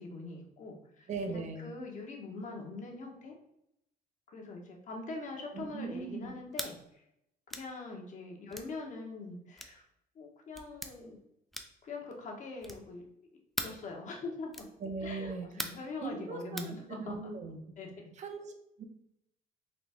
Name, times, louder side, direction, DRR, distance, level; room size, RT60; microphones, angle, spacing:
voice 1, 0.0-3.3 4.3-6.8 7.5-9.8 10.1-11.2 11.8-13.0 13.6-14.5 15.0-17.1 17.8-17.9, left 3 dB, 45° left, 2 dB, 0.9 m, -43 dB
voice 2, 1.1-1.7 5.4-6.3 14.8-15.7 16.0-17.6 18.2-18.8, right 4 dB, 45° right, 6 dB, 0.6 m, -40 dB
sound 1, 6.5-6.8 7.5-7.7 8.5-8.7 9.6-9.8 10.5-10.9 11.5-11.9 12.6-12.9 13.6-13.8 14.5-14.8 15.6-15.9 16.6-16.7, equal, ahead, 0.4 m, -40 dB
4.0 x 2.5 x 3.4 m, 0.80 s
cardioid pair, 110°, 17 cm